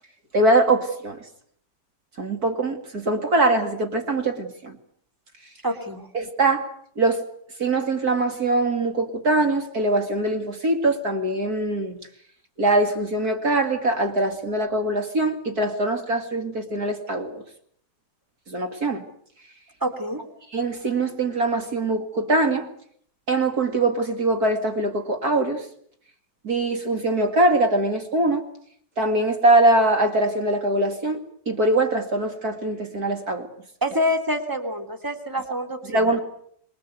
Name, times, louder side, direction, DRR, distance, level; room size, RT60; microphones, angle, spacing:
voice 1, 0.3-1.2 2.2-4.7 6.1-6.7 7.0-7.2 7.6-12.0 12.6-17.4 18.5-19.0 20.5-22.7 23.3-25.6 26.4-28.4 29.0-31.2 31.5-33.5 35.9-36.2, right 2 dB, 30° right, 6 dB, 2.1 m, -22 dB
voice 2, 5.6-6.1 19.8-20.2 33.8-36.0, equal, 5° right, 7 dB, 2.5 m, -26 dB
28.0 x 22.0 x 8.1 m, 0.65 s
omnidirectional pair, 4.2 m